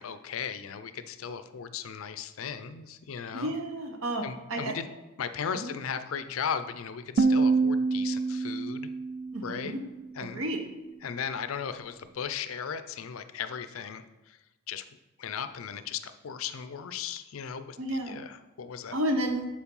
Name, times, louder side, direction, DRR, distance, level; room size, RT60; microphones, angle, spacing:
voice 1, 0.0-3.5 4.2-4.9 5.2-8.9 9.4-9.7 10.1-10.4 11.0-14.4 14.7-14.8 15.2-19.0, left 7 dB, 70° left, 11 dB, 0.5 m, -36 dB
voice 2, 3.3-4.7 5.6-5.7 9.3-9.8 10.2-10.6 17.8-18.2 18.9-19.5, right 1 dB, 70° right, 4 dB, 1.0 m, -31 dB
sound 1, 7.2-10.2, right 4 dB, 55° right, 0.4 m, -27 dB
7.1 x 4.5 x 5.4 m, 1.1 s
head